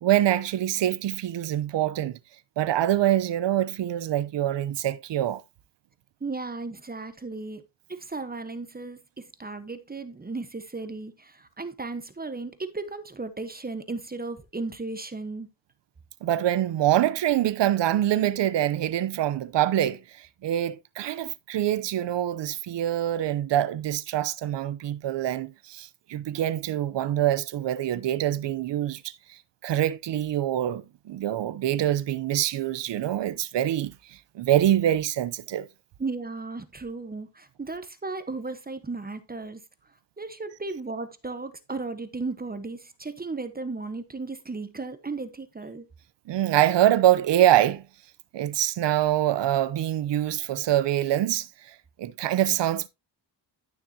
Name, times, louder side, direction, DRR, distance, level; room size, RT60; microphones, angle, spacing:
voice 1, 0.0-2.2 2.6-5.4 16.2-35.7 46.3-47.8 48.3-52.9, right 12 dB, 80° right, 0.9 m, -25 dB
voice 2, 6.2-7.6 7.9-15.5 36.0-39.6 40.2-45.8, right 3 dB, 20° right, 1.2 m, -35 dB
12.5 x 6.5 x 2.8 m
cardioid pair, 100°, 42 cm